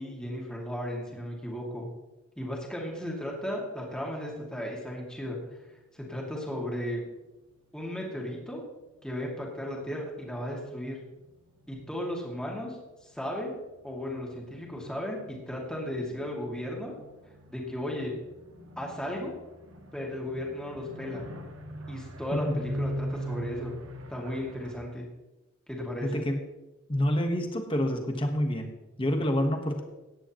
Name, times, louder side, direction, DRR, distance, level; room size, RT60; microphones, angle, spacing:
voice 1, 0.0-1.9 2.4-5.4 5.9-7.0 7.7-8.6 9.0-11.0 11.7-13.5 13.8-16.9 17.5-18.2 18.8-19.3 19.9-21.2 21.9-23.7 24.1-25.1 25.7-26.2, left 1 dB, 5° left, -2 dB, 2.3 m, -35 dB
sound 1, 5.6-8.0 8.3-24.8, right 1 dB, 85° right, 1.4 m, -43 dB
voice 2, 26.0-26.4 26.9-28.7 29.0-29.8, equal, 25° left, 5 dB, 1.3 m, -27 dB
16.0 x 10.0 x 3.0 m, 1.0 s
head